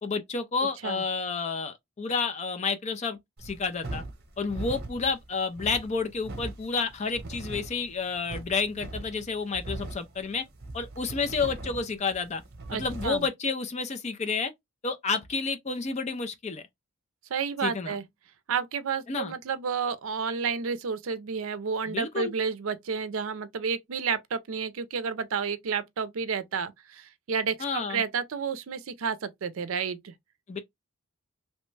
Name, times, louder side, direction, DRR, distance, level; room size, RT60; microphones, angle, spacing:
voice 1, 0.0-4.0 4.4-10.4 10.7-12.4 12.7-14.5 14.8-16.6 17.6-17.9 19.1-19.3 21.9-22.3 27.6-28.0 30.5-30.6, left 4 dB, 30° left, 0.4 m, -30 dB
sound 1, 3.4-13.3, right 2 dB, 50° right, 0.9 m, -40 dB
voice 2, 12.7-13.3 17.3-18.0 18.5-30.1, right 6 dB, 70° right, 0.5 m, -31 dB
3.0 x 2.1 x 3.1 m
head